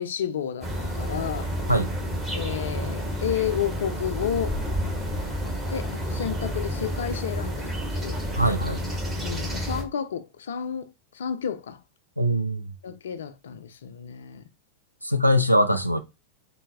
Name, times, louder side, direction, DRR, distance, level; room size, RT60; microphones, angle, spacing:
voice 1, 0.0-1.5 2.3-4.6 5.7-8.2 9.2-11.8 12.8-14.4, left 8 dB, 65° left, 0.4 m, -31 dB
sound 1, 0.6-9.8, equal, 15° right, 1.3 m, -30 dB
voice 2, 8.4-8.8 12.2-12.6 15.0-16.0, equal, 90° right, 0.4 m, -22 dB
4.1 x 2.2 x 3.4 m
figure-of-eight pair, 90°, 0 cm